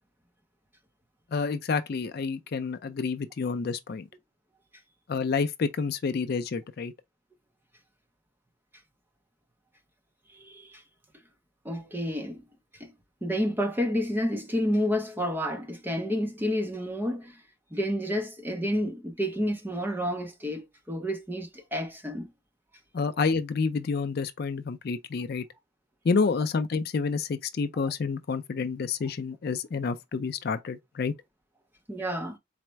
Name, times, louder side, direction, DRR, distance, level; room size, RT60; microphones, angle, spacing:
voice 1, 1.3-4.1 5.1-6.9 22.9-25.4 26.0-31.1, left 4 dB, 45° left, 0.4 m, -29 dB
voice 2, 10.3-10.8 11.6-12.4 12.8-12.9 13.2-17.4 17.7-22.3 31.9-32.4, equal, 10° right, 0.5 m, -30 dB
4.1 x 2.0 x 4.4 m
head